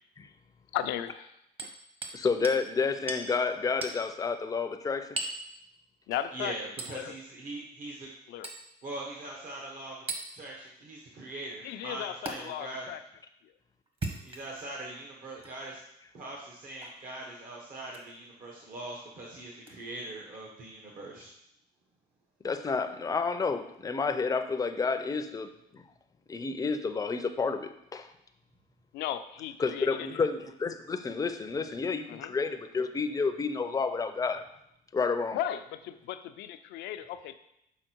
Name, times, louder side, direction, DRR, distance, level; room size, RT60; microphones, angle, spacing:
voice 1, 0.7-1.3 1.6-1.7 6.1-6.6 6.9-7.2 8.3-8.5 11.6-13.0 13.4-13.5 28.9-30.3 32.1-32.3 35.3-37.3, left 11 dB, 80° left, 10 dB, 0.5 m, -36 dB
Hammer, 1.6-2.2 2.4-2.6 3.1-3.3 3.8-4.0 5.2-5.4 6.8-7.0 8.4-8.6 10.1-10.3 12.3-12.4 13.9-14.6 15.4-15.5 16.8-17.0 17.9-18.1 19.6-19.7, right 3 dB, 35° right, 1.2 m, -37 dB
voice 2, 2.1-5.2 22.4-25.8 26.3-28.1 29.6-34.4 34.9-35.4, left 4 dB, 20° left, 8 dB, 0.5 m, -30 dB
voice 3, 6.3-8.1 8.8-10.0 10.3-12.9 14.2-15.8 16.1-21.3, right 2 dB, 55° right, -2 dB, 1.2 m, -41 dB
6.4 x 4.3 x 4.5 m, 0.79 s
cardioid pair, 110°, 17 cm